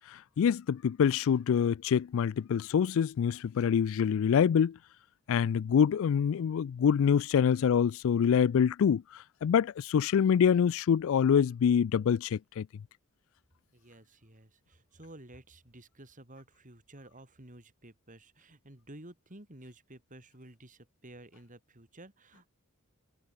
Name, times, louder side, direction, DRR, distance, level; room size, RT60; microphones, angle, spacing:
voice 1, 0.4-4.8 5.3-9.0 9.4-12.7, left 7 dB, 65° left, 0.3 m, -25 dB
voice 2, 13.7-22.5, right 1 dB, 40° right, 3.8 m, -52 dB
head